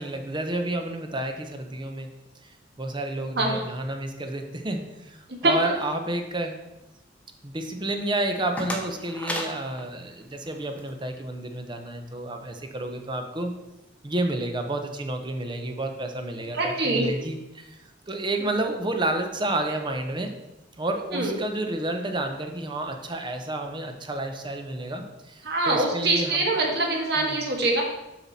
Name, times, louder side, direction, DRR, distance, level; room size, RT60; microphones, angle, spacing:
voice 1, 0.0-2.1 2.8-6.5 7.4-13.5 14.0-17.8 18.1-20.3 20.8-26.5 27.2-27.4, right 1 dB, 25° right, 5 dB, 0.8 m, -30 dB
sound 1, 8.1-10.9, left 1 dB, 10° left, 1.0 m, -36 dB
voice 2, 16.5-17.1 21.1-21.4 25.4-27.8, right 2 dB, 60° right, 1 dB, 1.5 m, -24 dB
7.1 x 5.8 x 4.1 m, 0.97 s
head